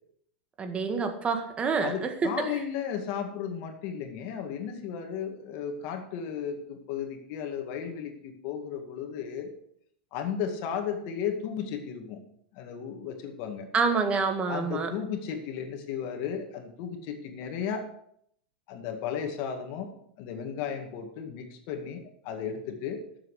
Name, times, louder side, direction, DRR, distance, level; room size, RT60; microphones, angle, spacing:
voice 1, 0.6-2.3 13.7-14.9, right 5 dB, 20° right, 6 dB, 1.7 m, -27 dB
voice 2, 1.8-9.5 10.1-12.2 12.5-13.7 14.5-17.9 18.7-23.0, left 7 dB, 55° left, 5 dB, 2.1 m, -34 dB
12.5 x 7.6 x 5.0 m, 0.70 s
supercardioid pair, 135°, 5 cm